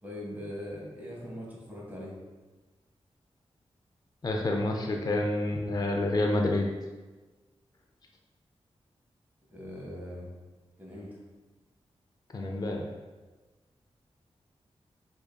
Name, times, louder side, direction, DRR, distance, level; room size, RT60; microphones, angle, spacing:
voice 1, 0.0-2.2 9.5-10.3 10.8-11.2, left 1 dB, 15° right, -4 dB, 1.1 m, -41 dB
voice 2, 4.2-6.7 12.3-13.0, left 2 dB, 35° left, 1 dB, 0.4 m, -28 dB
4.8 x 2.6 x 2.3 m, 1.2 s
cardioid pair, 70°, 11 cm